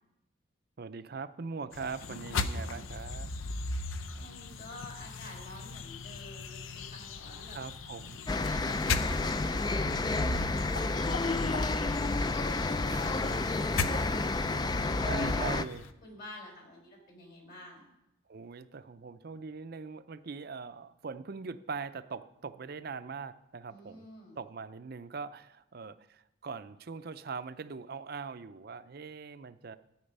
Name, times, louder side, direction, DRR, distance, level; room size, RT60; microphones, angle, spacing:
voice 1, 0.8-3.3 7.5-8.2 12.9-13.3 15.0-15.8 18.3-24.0 24.4-29.8, right 4 dB, 50° right, 12 dB, 0.5 m, -41 dB
sound 1, 1.7-15.9, left 3 dB, 80° left, 0.6 m, -38 dB
voice 2, 3.9-7.6 8.4-11.3 12.9-14.2 14.5-15.7 16.0-17.8 23.7-24.4, left 1 dB, 50° left, 2 dB, 3.7 m, -49 dB
sound 2, 8.3-15.6, left 3 dB, 20° left, 0.3 m, -30 dB
13.5 x 8.8 x 5.4 m, 0.87 s
head